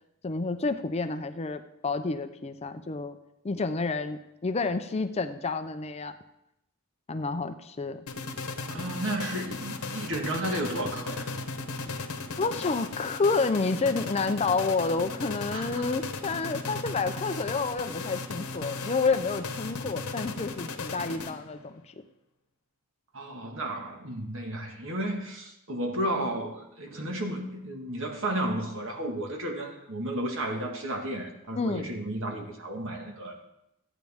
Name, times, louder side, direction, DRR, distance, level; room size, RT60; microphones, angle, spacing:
voice 1, 0.2-3.2 3.4-6.2 7.1-8.1 11.8-12.1 12.4-22.0 31.6-31.9, left 4 dB, 30° left, 9 dB, 0.4 m, -29 dB
sound 1, 8.1-21.7, left 3 dB, 80° left, 1.1 m, -36 dB
voice 2, 8.7-11.3 15.5-15.8 23.1-33.4, right 1 dB, 60° right, 2 dB, 1.7 m, -33 dB
14.5 x 9.0 x 3.6 m, 0.85 s
head